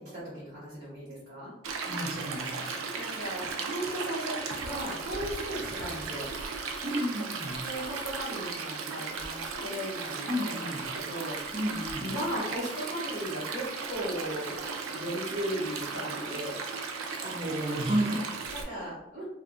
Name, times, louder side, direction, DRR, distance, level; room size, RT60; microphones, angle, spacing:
voice 1, 0.0-1.5 2.8-6.2 7.6-10.2 10.9-11.5 12.0-14.6 14.9-16.5 18.5-19.2, equal, 55° right, -10 dB, 1.0 m, -36 dB
Stream, 1.6-18.6, right 4 dB, 85° right, 0.4 m, -36 dB
voice 2, 1.9-2.8 3.1-3.3 6.8-7.6 10.3-10.9 11.5-12.1 17.2-18.4 18.6-19.0, equal, 25° right, -3 dB, 0.6 m, -32 dB
2.7 x 2.4 x 2.4 m, 0.89 s
head